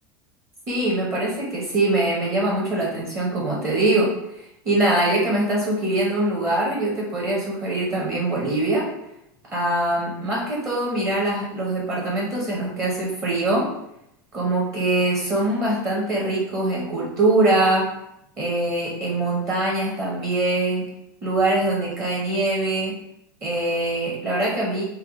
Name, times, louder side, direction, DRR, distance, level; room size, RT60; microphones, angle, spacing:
voice 1, 0.7-8.9 9.5-13.7 14.3-17.9 18.4-20.8 21.2-23.0 23.4-24.8, right 2 dB, 25° right, -4 dB, 0.7 m, -23 dB
3.3 x 2.1 x 3.5 m, 0.80 s
supercardioid pair, 150°, 10 cm